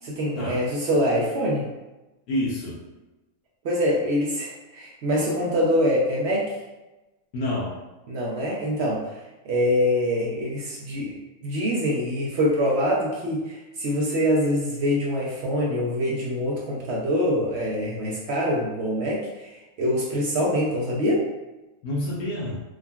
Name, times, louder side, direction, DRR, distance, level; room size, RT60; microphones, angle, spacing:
voice 1, 0.0-1.7 3.6-6.5 8.1-9.1 9.4-11.1 11.4-21.2, equal, 65° right, -4 dB, 0.7 m, -24 dB
voice 2, 2.3-2.8 7.3-7.7 21.8-22.6, left 1 dB, 80° left, -5 dB, 1.1 m, -28 dB
3.6 x 2.1 x 2.2 m, 1.1 s
omnidirectional pair, 1.5 m